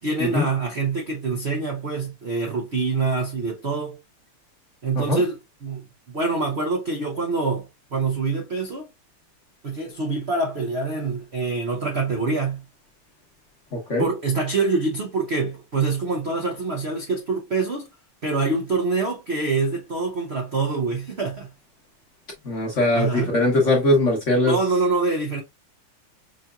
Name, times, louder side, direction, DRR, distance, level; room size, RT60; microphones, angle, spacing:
voice 1, 0.0-4.0 4.8-8.9 9.6-12.6 14.0-17.9 18.2-21.5 22.9-23.3 24.5-25.4, right 3 dB, 55° right, 0.7 m, -25 dB
voice 2, 22.4-24.6, left 2 dB, 45° left, 1.1 m, -20 dB
5.4 x 2.8 x 2.3 m
omnidirectional pair, 2.4 m